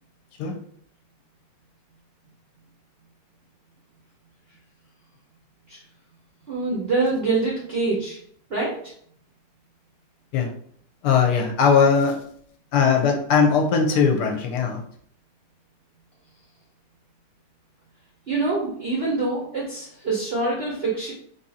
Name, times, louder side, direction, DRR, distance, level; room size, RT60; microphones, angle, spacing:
voice 1, 6.5-8.2 8.5-8.8 18.3-21.1, right 3 dB, 60° right, -4 dB, 0.6 m, -25 dB
voice 2, 11.0-12.2 12.7-14.8, left 6 dB, 75° left, 3 dB, 1.1 m, -19 dB
3.6 x 2.6 x 2.7 m, 0.63 s
omnidirectional pair, 1.9 m